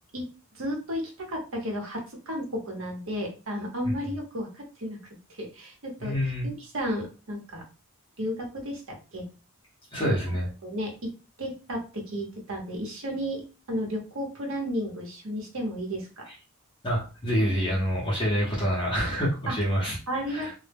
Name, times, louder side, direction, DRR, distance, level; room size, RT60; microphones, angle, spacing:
voice 1, 0.5-5.0 5.3-6.1 6.4-7.6 8.2-9.3 10.0-10.1 10.6-10.9 11.4-13.4 13.7-16.1 19.5-19.6 20.1-20.5, equal, 70° right, 0 dB, 0.8 m, -33 dB
voice 2, 6.0-6.5 9.9-10.5 16.3-16.4 16.8-20.0 20.3-20.5, equal, 25° left, -5 dB, 0.6 m, -27 dB
2.1 x 2.0 x 3.3 m, 0.34 s
head